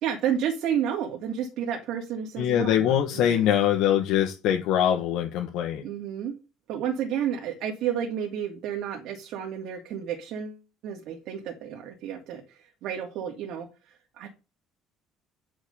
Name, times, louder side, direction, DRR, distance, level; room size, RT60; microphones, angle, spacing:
voice 1, 0.0-3.5 5.8-6.3 6.7-14.3, right 9 dB, 60° right, 2 dB, 2.5 m, -31 dB
voice 2, 2.4-5.8, left 10 dB, 70° left, 2 dB, 1.9 m, -23 dB
10.0 x 6.4 x 6.7 m, 0.29 s
cardioid pair, 170°, 0 cm